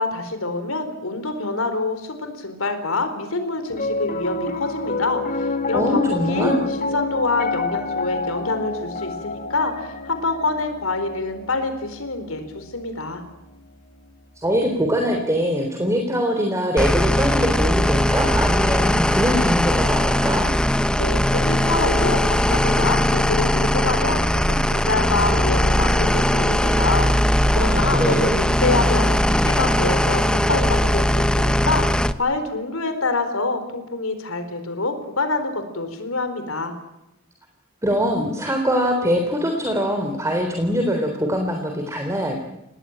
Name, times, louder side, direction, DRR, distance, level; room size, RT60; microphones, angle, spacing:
voice 1, 0.0-13.2 21.0-29.1 29.4-36.7, left 3 dB, 90° left, 8 dB, 4.2 m, -26 dB
Piano, 3.7-14.1, left 3 dB, 45° left, 2.2 m, -29 dB
voice 2, 5.7-6.6 14.4-20.5 27.5-28.4 37.8-42.4, equal, 15° right, 3 dB, 3.6 m, -23 dB
sound 1, 16.8-32.1, left 1 dB, 5° left, 1.0 m, -19 dB
28.0 x 19.5 x 8.9 m, 0.90 s
head